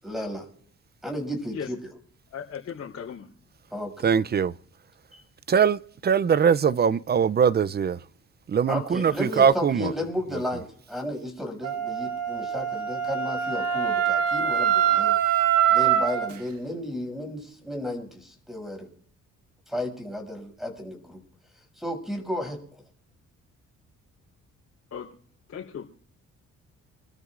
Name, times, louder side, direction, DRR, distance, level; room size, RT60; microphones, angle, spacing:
voice 1, 0.0-0.5 1.0-1.8 3.7-4.1 5.1-5.2 8.7-15.2 15.7-18.9 19.7-21.2 21.8-22.6, left 1 dB, ahead, 6.7 m, -33 dB
voice 2, 2.3-3.3 24.9-25.1 25.5-25.9, left 7 dB, 55° left, 3.8 m, -36 dB
voice 3, 4.0-4.5 5.5-8.0 8.5-9.9, right 7 dB, 35° right, 0.5 m, -21 dB
Wind instrument woodwind instrument, 11.6-16.3, right 9 dB, 90° right, 1.6 m, -24 dB
28.5 x 13.5 x 2.5 m
cardioid pair, 90°, 30 cm